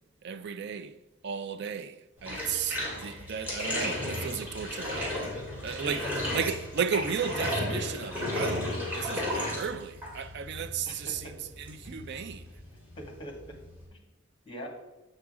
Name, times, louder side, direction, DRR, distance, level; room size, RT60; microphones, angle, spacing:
voice 1, 0.2-1.0 1.2-5.2 5.6-12.5, right 6 dB, 55° right, 0.4 m, -34 dB
Bathtub (filling or washing), 2.2-13.9, left 1 dB, 10° right, 2.3 m, -34 dB
voice 2, 5.7-6.3 10.8-11.3 13.0-13.5 13.9-14.0 14.4-14.7, equal, 25° left, 1.7 m, -43 dB
7.6 x 6.0 x 3.6 m
head